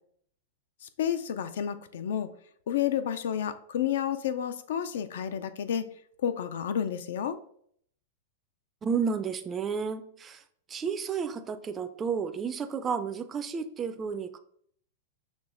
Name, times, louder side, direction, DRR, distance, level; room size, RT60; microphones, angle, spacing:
voice 1, 1.0-2.3 2.7-5.9 6.2-7.4, left 9 dB, 75° left, 12 dB, 0.4 m, -30 dB
voice 2, 8.8-10.4 10.7-14.4, right 6 dB, 20° right, 9 dB, 0.3 m, -32 dB
6.2 x 3.2 x 2.5 m, 0.64 s
hypercardioid pair, 125°, 0 cm